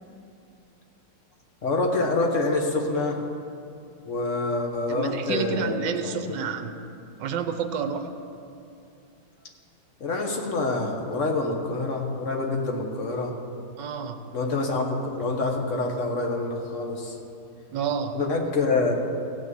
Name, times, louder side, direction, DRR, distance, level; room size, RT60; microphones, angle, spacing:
voice 1, 1.6-3.2 4.0-5.8 6.0-6.4 10.0-13.3 14.3-17.2 18.1-18.9, left 3 dB, 45° left, 2 dB, 1.4 m, -26 dB
voice 2, 4.9-6.7 7.2-8.1 13.8-14.3 17.7-18.2, right 6 dB, 75° right, 8 dB, 1.4 m, -29 dB
15.5 x 6.3 x 7.7 m, 2.5 s
omnidirectional pair, 2.1 m